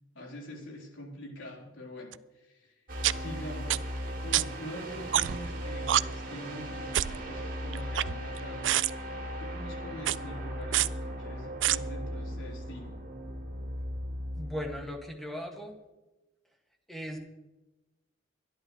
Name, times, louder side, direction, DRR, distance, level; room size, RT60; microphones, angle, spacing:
voice 1, 0.1-2.8 3.1-3.9 4.2-8.9 9.4-13.0, left 1 dB, 80° left, -1 dB, 4.0 m, -44 dB
sound 1, 2.1-2.2 3.0-3.1 3.7-3.8 4.3-4.4 5.1-5.5 5.9-6.0 6.9-7.2 7.7-8.4 8.6-8.9 10.0-10.2 10.7-10.9 11.6-11.8, right 12 dB, 75° right, 0.4 m, -26 dB
sound 2, 2.9-14.9, equal, 45° right, 2.8 m, -38 dB
voice 2, 14.4-15.8 16.9-17.2, equal, ahead, 1 dB, 1.9 m, -38 dB
23.5 x 11.0 x 3.2 m, 1.0 s
head